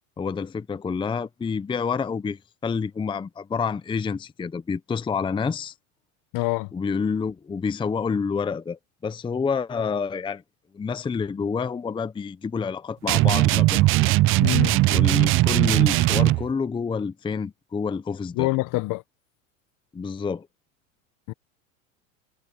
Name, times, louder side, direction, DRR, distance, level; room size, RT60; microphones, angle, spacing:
voice 1, 0.2-5.7 6.7-10.4 10.7-14.2 14.9-18.5 19.9-20.5, left 5 dB, 10° left, 0.7 m, -28 dB
voice 2, 6.3-6.7 14.4-14.8 18.3-19.0 21.3-21.4, left 22 dB, 50° left, 1.4 m, -25 dB
sound 1, 13.1-16.5, right 19 dB, 35° right, 0.4 m, -19 dB
hypercardioid pair, 105°, 41 cm